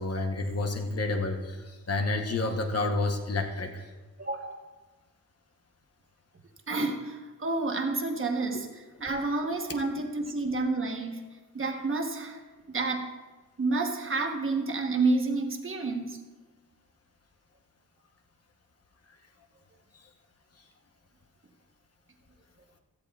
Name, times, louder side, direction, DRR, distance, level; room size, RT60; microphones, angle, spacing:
voice 1, 0.0-3.8, left 2 dB, 45° left, 4 dB, 1.0 m, -29 dB
voice 2, 4.2-4.6 6.7-8.7 9.0-11.2 11.5-12.4 12.7-13.1 13.6-16.2, right 3 dB, 40° right, 3 dB, 1.0 m, -29 dB
16.0 x 13.0 x 2.3 m, 1.3 s
wide cardioid pair, 180°, 33 cm